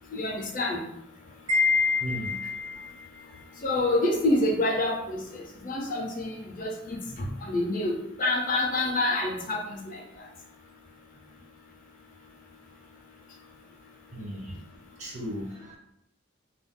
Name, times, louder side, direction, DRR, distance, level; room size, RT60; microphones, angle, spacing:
voice 1, 0.1-0.8 3.6-10.0, left 2 dB, 40° left, 1 dB, 0.4 m, -27 dB
Wind chime, 1.5-2.9, left 4 dB, 85° right, 1.0 m, -25 dB
voice 2, 2.0-2.4 14.1-14.6 15.0-15.8, equal, 35° right, 0 dB, 0.5 m, -36 dB
2.3 x 2.1 x 3.5 m, 0.81 s
head